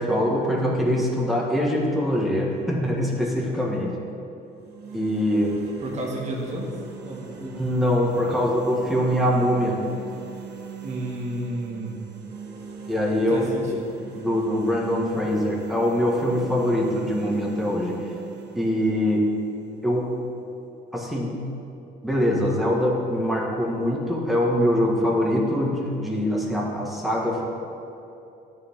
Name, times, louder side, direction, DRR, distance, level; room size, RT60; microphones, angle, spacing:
voice 1, 0.0-3.9 4.9-5.5 7.4-9.8 12.9-13.4 14.1-18.0 18.5-19.3 19.8-20.1 20.9-21.3 22.0-27.4, equal, ahead, -3 dB, 1.5 m, -23 dB
sound 1, 4.5-20.5, right 5 dB, 75° right, 1.3 m, -41 dB
voice 2, 5.8-6.7 7.0-7.3 8.3-8.4 10.8-11.9 13.3-13.8, right 1 dB, 45° right, -2 dB, 1.7 m, -31 dB
12.5 x 4.6 x 3.7 m, 2.8 s
cardioid pair, 110°, 17 cm